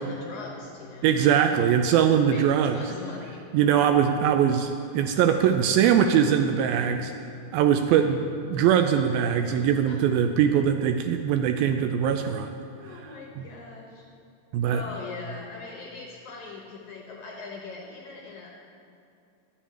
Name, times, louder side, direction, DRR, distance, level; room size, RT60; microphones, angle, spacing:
voice 1, 0.0-1.6 2.3-2.4 2.7-3.4 9.5-10.0 12.8-14.1 14.7-18.5, left 4 dB, 65° left, -1 dB, 2.1 m, -41 dB
voice 2, 1.0-2.8 3.5-7.1 7.5-12.5 13.4-13.5 14.5-14.8, right 8 dB, 80° right, 6 dB, 2.2 m, -22 dB
11.0 x 7.2 x 8.6 m, 2.5 s
omnidirectional pair, 4.5 m